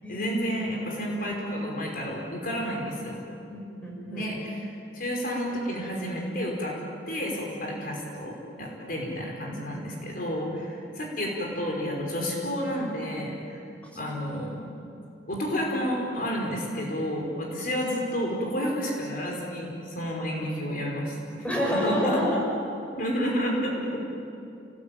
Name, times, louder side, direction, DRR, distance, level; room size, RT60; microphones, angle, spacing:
voice 1, 0.1-3.2 4.1-6.8 7.1-13.6 14.0-14.9 15.3-22.2 22.9-24.0, equal, 50° left, -1 dB, 5.2 m, -31 dB
voice 2, 3.5-4.3 21.4-22.3, left 1 dB, 10° left, -3 dB, 6.6 m, -28 dB
30.0 x 20.0 x 9.0 m, 2.6 s
head